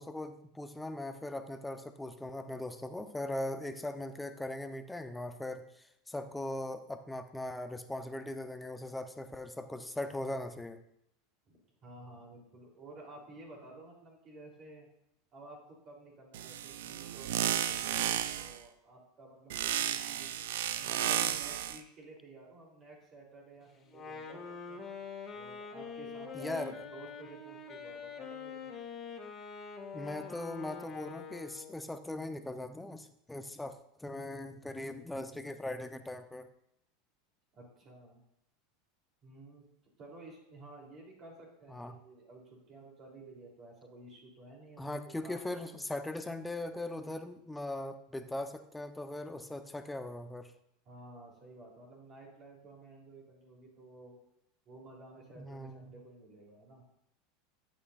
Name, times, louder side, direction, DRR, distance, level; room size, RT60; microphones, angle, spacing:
voice 1, 0.0-5.7 6.1-10.8 26.3-26.8 29.9-36.5 41.7-42.0 44.8-50.5 55.4-56.0, left 1 dB, 10° left, 8 dB, 0.9 m, -40 dB
voice 2, 11.5-14.9 15.3-20.3 20.7-24.9 25.3-28.7 37.5-38.2 39.2-39.7 40.0-45.8 50.9-54.2 54.7-56.8, right 2 dB, 45° right, -1 dB, 3.6 m, -53 dB
sound 1, 16.3-18.6 19.5-21.8, right 10 dB, 75° right, 0.6 m, -33 dB
Wind instrument woodwind instrument, 23.9-31.8, left 6 dB, 30° left, 2.0 m, -44 dB
14.0 x 8.5 x 2.6 m, 0.79 s
hypercardioid pair, 100°, 0 cm